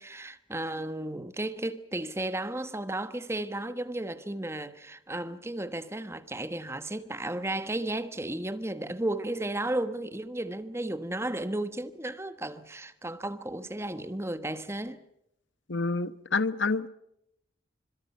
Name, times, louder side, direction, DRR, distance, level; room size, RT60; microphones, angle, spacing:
voice 1, 0.0-15.0, right 1 dB, 15° right, 1.2 m, -34 dB
voice 2, 15.7-16.9, left 3 dB, 80° left, 1.1 m, -28 dB
28.0 x 26.0 x 5.6 m
head